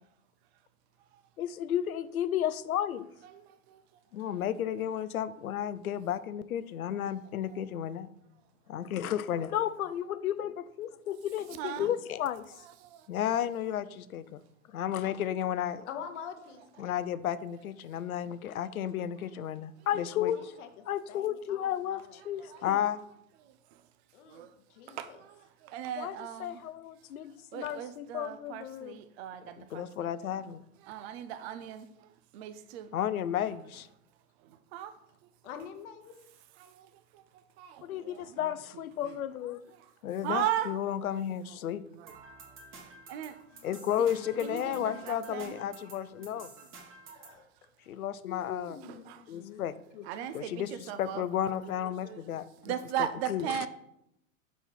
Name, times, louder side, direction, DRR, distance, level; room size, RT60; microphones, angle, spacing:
voice 1, 1.4-3.1 4.1-8.1 8.7-12.6 13.1-14.4 14.7-15.9 16.8-20.5 20.9-23.1 26.0-29.0 29.4-30.6 32.9-33.9 37.8-39.6 40.0-41.8 43.6-46.5 47.9-48.8 49.3-49.7 50.3-52.7 53.0-53.7, left 10 dB, 85° left, 0.5 m, -33 dB
voice 2, 3.2-3.8 7.5-7.6 11.6-11.9 12.8-13.1 16.8-16.9 19.4-19.5 22.4-22.6 23.4-23.8 24.3-24.5 24.9-26.6 27.5-30.1 30.8-32.9 34.5-35.0 36.6-37.2 37.6-38.5 39.0-39.1 39.7-39.9 40.2-40.7 41.1-41.2 41.7-42.1 43.1-43.4 43.9-44.1 44.4-45.6 46.4-46.5 48.9-49.2 50.0-51.2 51.6-52.2 52.6-53.7, right 10 dB, 50° right, 0.5 m, -38 dB
voice 3, 15.9-16.9 20.3-22.2 24.1-25.2 35.4-36.2 43.1-43.8 44.0-45.3 45.6-46.3 47.1-47.4 48.2-49.6 49.9-50.3, left 8 dB, 55° left, 0.9 m, -47 dB
sound 1, 42.1-47.4, right 3 dB, 30° right, 1.4 m, -51 dB
4.5 x 4.1 x 5.5 m
hypercardioid pair, 105°, 42 cm